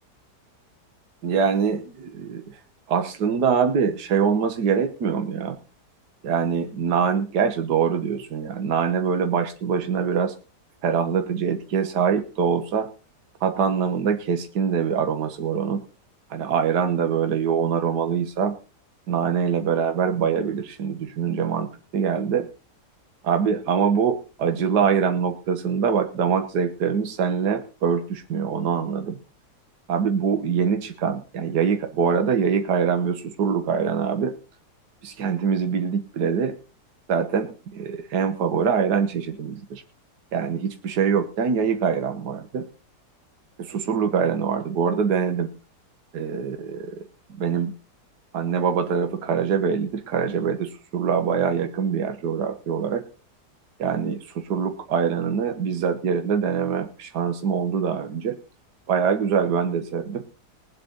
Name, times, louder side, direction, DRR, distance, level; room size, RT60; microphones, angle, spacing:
voice 1, 1.2-2.6 2.9-5.6 6.2-10.3 10.8-12.9 13.4-15.8 16.3-18.6 19.1-22.5 23.2-29.2 29.9-34.3 35.0-36.5 37.1-39.8 40.3-42.7 43.6-45.5 46.1-47.0 47.3-47.7 48.3-53.0 53.8-58.4 58.9-60.2, right 6 dB, 70° right, 6 dB, 1.8 m, -24 dB
21.5 x 8.0 x 3.9 m, 0.35 s
omnidirectional pair, 1.9 m